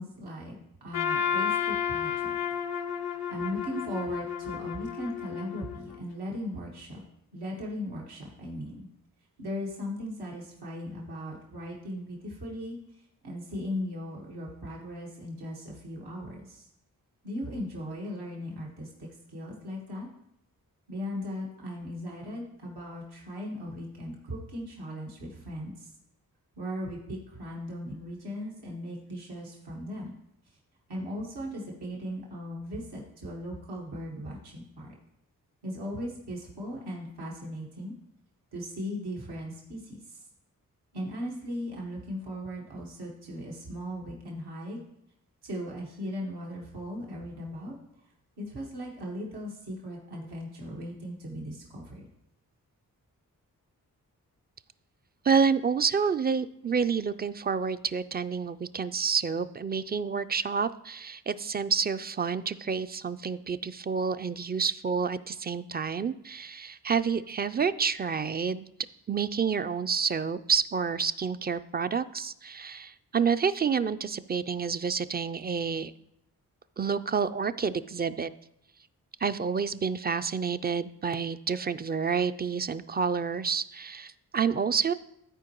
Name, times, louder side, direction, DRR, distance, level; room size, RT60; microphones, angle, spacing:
voice 1, 0.0-2.4 3.3-7.0 7.3-8.9 9.4-12.8 13.2-16.7 17.2-20.1 20.9-25.9 26.6-30.1 30.9-34.9 35.6-37.9 38.5-40.2 40.9-44.8 45.4-47.7 48.4-52.0, equal, 90° right, -3 dB, 1.6 m, -38 dB
Trumpet, 0.9-6.0, left 8 dB, 80° left, 0.6 m, -32 dB
voice 2, 55.2-68.7 69.1-75.9 76.8-78.3 79.2-84.9, right 6 dB, 25° right, 13 dB, 0.3 m, -29 dB
13.5 x 4.5 x 3.0 m, 0.78 s
cardioid pair, 40°, 38 cm